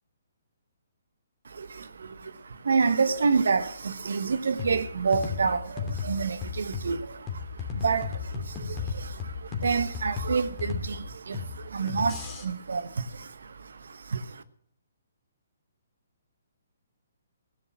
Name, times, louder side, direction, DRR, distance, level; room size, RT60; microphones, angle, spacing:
voice 1, 1.4-14.4, right 5 dB, 70° right, 1.1 m, -29 dB
sound 1, 4.6-12.4, left 5 dB, 20° left, 2.8 m, -35 dB
16.0 x 7.0 x 9.6 m
figure-of-eight pair, 135°, 0 cm